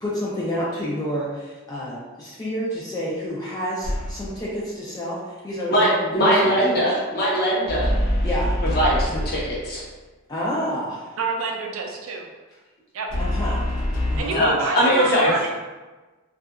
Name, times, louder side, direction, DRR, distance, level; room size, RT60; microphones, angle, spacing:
voice 1, 0.0-6.6 8.2-8.6 10.3-11.1 13.2-13.6 14.1-14.4, equal, 15° left, -6 dB, 0.3 m, -29 dB
sound 1, 3.8-4.4 7.7-9.7 13.1-14.2, left 1 dB, 85° left, 0.7 m, -25 dB
voice 2, 5.7-7.9 8.7-9.8 14.3-15.3, equal, 45° left, -5 dB, 0.7 m, -20 dB
voice 3, 11.2-12.3 12.9-13.1 14.2-15.5, right 3 dB, 70° right, 2 dB, 0.4 m, -27 dB
2.7 x 2.4 x 2.3 m, 1.2 s
head